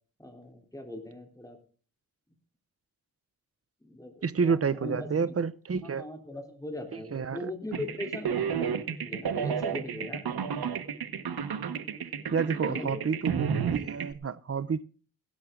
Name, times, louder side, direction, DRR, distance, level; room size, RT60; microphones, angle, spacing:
voice 1, 0.2-1.6 3.8-5.3 5.9-10.2 12.4-13.1, left 1 dB, 10° left, 3.4 m, -40 dB
voice 2, 4.2-6.1 6.9-7.5 12.3-14.8, right 6 dB, 40° right, 0.7 m, -29 dB
sound 1, 7.7-14.1, right 7 dB, 90° right, 1.1 m, -31 dB
16.5 x 12.5 x 3.7 m
wide cardioid pair, 95°, 36 cm